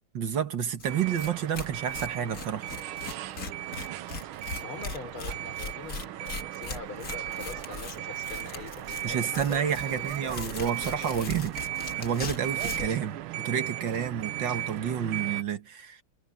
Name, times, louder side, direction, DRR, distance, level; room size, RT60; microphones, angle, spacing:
voice 1, 0.2-2.7 9.0-11.5 12.0-16.0, right 8 dB, 60° right, 2.0 m, -30 dB
Tearing, 0.8-0.9 1.2-1.3 1.5-13.0, left 4 dB, 45° left, 2.1 m, -39 dB
sound 1, 0.8-15.4, right 14 dB, 80° right, 1.6 m, -37 dB
voice 2, 4.6-10.6 10.9-11.3, left 4 dB, 75° left, 4.3 m, -43 dB
omnidirectional pair, 2.3 m